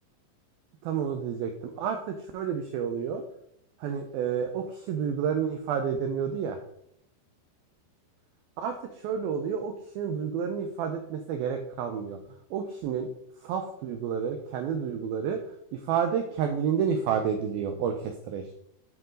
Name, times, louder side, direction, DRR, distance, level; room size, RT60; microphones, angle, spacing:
voice 1, 0.9-3.2 3.8-6.6 8.6-8.7 9.0-12.2 12.5-13.1 13.4-15.4 15.9-18.6, right 7 dB, 85° right, 5 dB, 2.1 m, -30 dB
11.0 x 4.7 x 3.8 m, 0.74 s
omnidirectional pair, 5.0 m